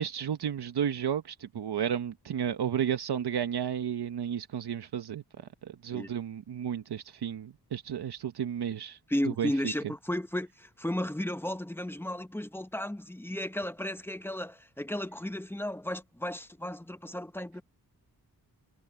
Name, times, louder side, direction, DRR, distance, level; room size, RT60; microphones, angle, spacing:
voice 1, 0.0-9.0 9.4-9.5, right 9 dB, 85° right, 1.1 m, -32 dB
voice 2, 9.1-17.6, left 1 dB, 5° left, 0.8 m, -34 dB
wide cardioid pair, 135°, 39 cm